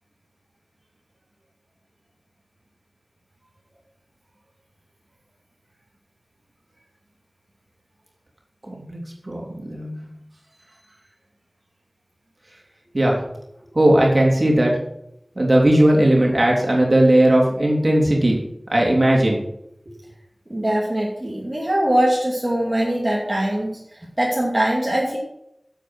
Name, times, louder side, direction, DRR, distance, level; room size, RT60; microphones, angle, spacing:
voice 1, 8.7-9.0 9.2-9.4 9.7-10.0 12.9-13.2 13.7-14.8 15.4-18.4 18.7-19.4, right 1 dB, 50° right, -1 dB, 3.3 m, -17 dB
voice 2, 20.5-25.2, right 1 dB, 30° right, -4 dB, 2.6 m, -22 dB
9.8 x 7.8 x 6.1 m, 0.77 s
wide cardioid pair, 50°, 0 cm